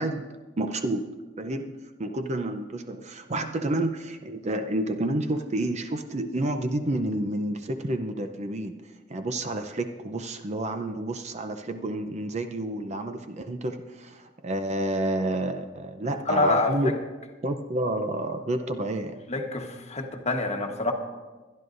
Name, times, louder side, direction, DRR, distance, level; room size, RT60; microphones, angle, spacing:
voice 1, 0.0-8.7 9.1-16.9 17.4-19.2, right 1 dB, 35° right, 7 dB, 0.6 m, -30 dB
voice 2, 16.1-16.9 19.3-20.9, left 3 dB, 35° left, 3 dB, 1.2 m, -26 dB
22.5 x 11.0 x 2.6 m, 1.3 s
head